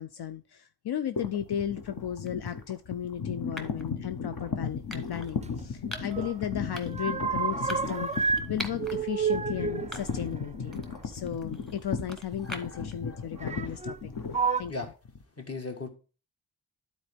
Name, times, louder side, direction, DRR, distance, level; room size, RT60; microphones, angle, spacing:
voice 1, 0.0-14.1 14.6-14.9, left 9 dB, 75° left, 11 dB, 0.5 m, -35 dB
sound 1, 1.2-15.2, left 5 dB, 60° left, 1.0 m, -36 dB
sound 2, 2.3-2.5 3.6-3.9 4.9-5.3 5.9-6.2 6.7-7.1 7.7-9.0 9.4-9.5 9.9-10.4 10.7-12.9, equal, ahead, 1.2 m, -42 dB
sound 3, 5.4-6.4 6.6-8.5 8.8-11.3 12.3-12.4 13.4-14.0 14.3-14.6, right 5 dB, 20° right, 0.4 m, -30 dB
voice 2, 12.4-13.8 14.7-14.9 15.4-15.9, left 3 dB, 40° left, 4 dB, 1.5 m, -40 dB
12.0 x 4.2 x 3.4 m, 0.35 s
wide cardioid pair, 100°, 39 cm